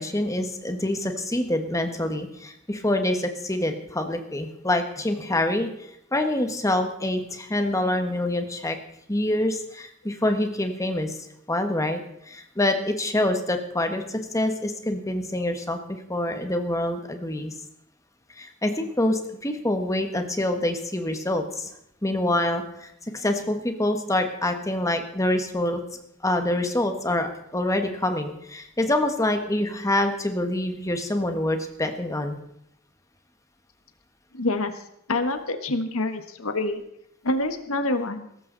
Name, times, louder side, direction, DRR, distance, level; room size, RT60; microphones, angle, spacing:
voice 1, 0.0-5.7 6.1-8.8 9.1-11.2 11.5-12.0 12.3-17.5 18.4-21.7 22.0-25.8 26.2-32.4, left 1 dB, 15° left, 6 dB, 1.4 m, -26 dB
voice 2, 34.3-34.8 35.1-36.8 37.2-38.3, left 2 dB, 75° left, 8 dB, 1.5 m, -26 dB
17.5 x 14.5 x 4.0 m, 0.76 s
head